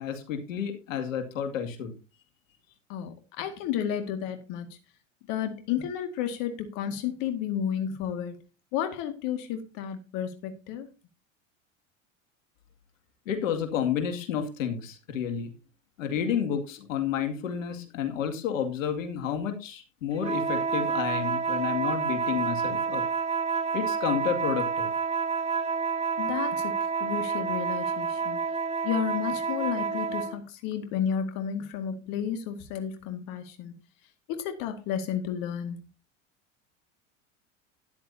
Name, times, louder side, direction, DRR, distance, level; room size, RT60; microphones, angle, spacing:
voice 1, 0.0-1.9 13.3-15.5 16.0-23.0 23.7-24.9, left 8 dB, 80° left, 7 dB, 2.3 m, -30 dB
voice 2, 2.9-4.8 5.3-8.4 8.7-10.9 26.2-26.7 27.0-28.4 28.8-33.7 34.3-35.8, left 9 dB, 55° left, 7 dB, 2.0 m, -32 dB
sound 1, 20.2-30.4, right 5 dB, 15° right, 2.1 m, -29 dB
13.0 x 10.5 x 2.7 m, 0.30 s
hypercardioid pair, 95°, 39 cm